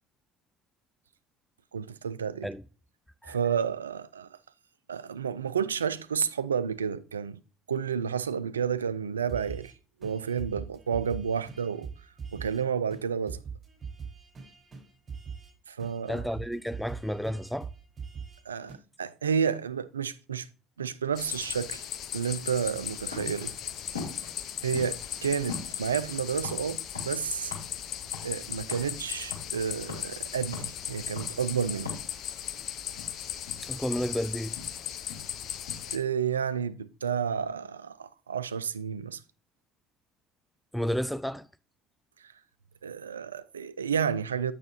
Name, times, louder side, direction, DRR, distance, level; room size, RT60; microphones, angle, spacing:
voice 1, 1.7-2.5 3.2-4.3 4.9-7.4 7.7-9.7 10.0-11.9 12.3-13.4 15.7-16.2 18.5-20.5 20.8-21.9 22.1-23.5 24.6-27.5 28.2-32.0 35.9-39.2 42.8-44.5, right 7 dB, 85° right, 0.3 m, -31 dB
sound 1, 9.3-9.7 10.0-12.6 12.9-13.0 13.3-15.5 15.8-18.4 18.7-18.8, right 6 dB, 25° right, 4.4 m, -42 dB
voice 2, 16.1-17.7 33.6-34.6 40.7-41.5, equal, ahead, 0.3 m, -31 dB
sound 2, 21.2-36.0, left 10 dB, 55° left, 0.7 m, -37 dB
sound 3, 22.4-36.0, left 5 dB, 85° left, 2.4 m, -45 dB
8.6 x 6.8 x 2.7 m
figure-of-eight pair, 60°, 0 cm